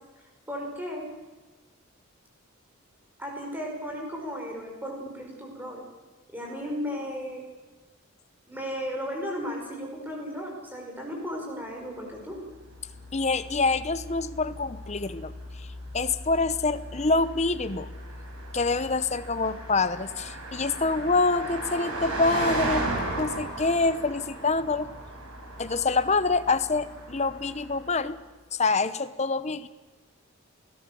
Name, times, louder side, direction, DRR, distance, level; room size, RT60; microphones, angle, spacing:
voice 1, 0.5-1.1 3.2-5.8 6.3-7.4 8.5-12.4, equal, 10° right, 0 dB, 5.5 m, -35 dB
Car passing by, 12.3-28.0, right 1 dB, 90° right, 5.5 m, -36 dB
voice 2, 13.1-15.3 15.9-17.9 18.5-22.8 23.2-24.9 25.6-28.2 28.5-29.7, left 3 dB, 30° left, 12 dB, 0.9 m, -26 dB
28.5 x 17.0 x 6.9 m, 1.2 s
head